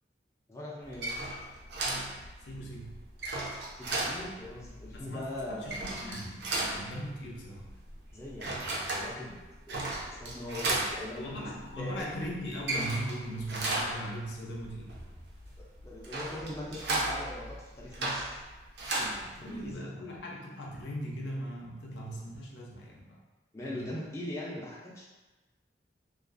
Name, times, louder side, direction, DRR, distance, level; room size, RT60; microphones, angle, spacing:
voice 1, 0.5-1.1 3.7-5.9 8.1-11.5 11.8-12.1 15.6-18.4 18.9-20.1 23.5-25.1, left 1 dB, 15° left, -6 dB, 0.3 m, -41 dB
sound 1, 0.8-19.7, right 2 dB, 75° right, 0.5 m, -36 dB
voice 2, 2.4-3.0 4.9-7.7 11.2-15.0 19.2-23.2 23.6-23.9, equal, 80° left, -2 dB, 0.5 m, -39 dB
2.4 x 2.3 x 2.4 m, 1.2 s
head